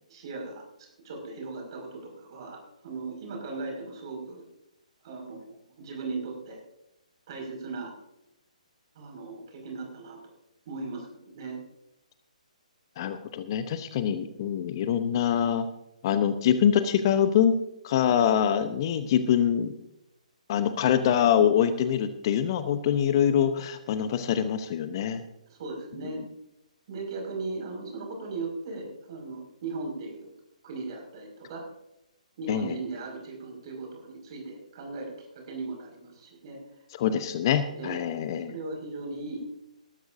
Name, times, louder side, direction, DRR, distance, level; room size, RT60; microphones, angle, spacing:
voice 1, 0.1-2.6 2.8-4.5 5.0-6.6 7.3-7.9 8.9-10.2 10.7-11.1 11.3-11.6 25.5-26.2 26.9-30.3 30.6-31.6 32.4-36.6 37.7-38.0 38.5-39.5, right 3 dB, 40° right, 1 dB, 5.6 m, -37 dB
voice 2, 13.0-15.7 16.0-17.6 17.8-19.7 20.5-25.2 32.5-32.8 37.0-38.5, left 9 dB, 35° left, 11 dB, 0.9 m, -24 dB
19.0 x 13.0 x 2.7 m, 0.85 s
figure-of-eight pair, 130°, 4 cm